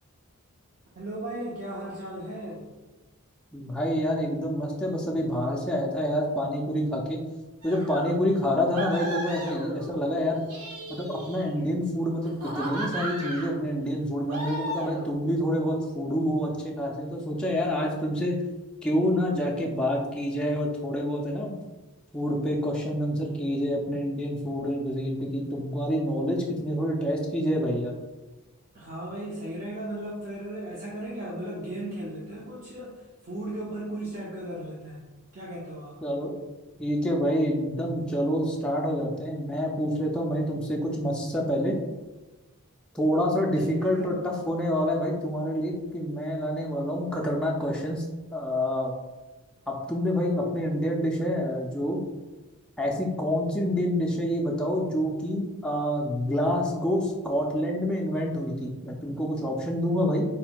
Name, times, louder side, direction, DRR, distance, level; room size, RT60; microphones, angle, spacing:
voice 1, 1.0-2.6 28.7-36.0 43.6-44.2, right 1 dB, 40° right, -5 dB, 0.6 m, -36 dB
voice 2, 3.5-7.2 7.6-10.4 10.9-18.4 18.8-21.5 22.1-27.9 36.0-36.3 36.8-41.7 42.9-48.1 48.3-48.9 49.7-52.0 52.8-60.3, equal, 5° left, -3 dB, 0.3 m, -27 dB
sound 1, 7.6-8.1 8.7-10.0 10.4-11.6 12.2-13.6 14.3-15.1, right 1 dB, 80° right, 0.8 m, -35 dB
4.3 x 3.7 x 2.2 m, 1.1 s
head